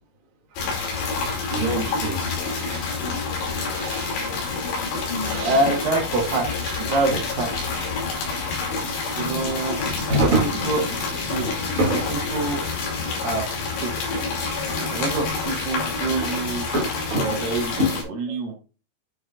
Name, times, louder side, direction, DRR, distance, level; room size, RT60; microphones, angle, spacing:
sound 1, 0.6-18.0, left 4 dB, 65° left, 4.6 m, -28 dB
voice 1, 1.2-3.1 3.5-4.5 5.2-5.6 6.9-7.0 10.1-10.8 11.4-12.0 14.1-14.6 16.2-16.3 16.7-17.3 17.8-17.9, right 1 dB, 45° right, -1 dB, 1.0 m, -27 dB
voice 2, 5.4-7.5 7.9-8.2 9.2-9.8 10.2-10.3 10.6-10.8 11.3-12.0 12.3-12.6 13.2-13.4 13.8-14.2 14.9-16.7 17.2-17.7 18.1-18.5, right 3 dB, 60° right, 1 dB, 2.6 m, -26 dB
9.9 x 6.1 x 2.4 m, 0.33 s
omnidirectional pair, 5.4 m